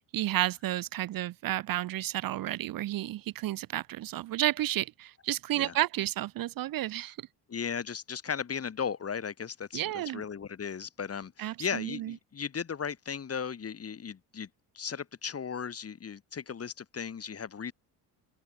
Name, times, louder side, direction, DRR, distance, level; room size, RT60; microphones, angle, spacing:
voice 1, 0.1-7.2 9.7-10.2 11.4-12.1, right 14 dB, 55° right, 1.0 m, -31 dB
voice 2, 7.5-14.5 14.7-17.7, left 7 dB, 35° left, 4.7 m, -36 dB
open air
cardioid pair, 100°, 40 cm